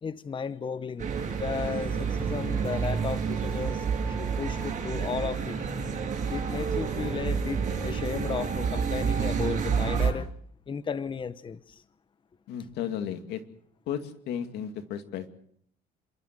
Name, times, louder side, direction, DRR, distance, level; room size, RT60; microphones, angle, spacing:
voice 1, 0.0-5.6 6.3-10.3 10.7-11.8, left 6 dB, 30° left, 13 dB, 0.9 m, -34 dB
sound 1, 1.0-10.1, right 6 dB, 45° right, 7.6 m, -29 dB
voice 2, 12.5-13.4 13.9-15.3, left 9 dB, 85° left, 7 dB, 2.4 m, -34 dB
28.0 x 13.0 x 7.6 m, 0.66 s
cardioid pair, 110°, 17 cm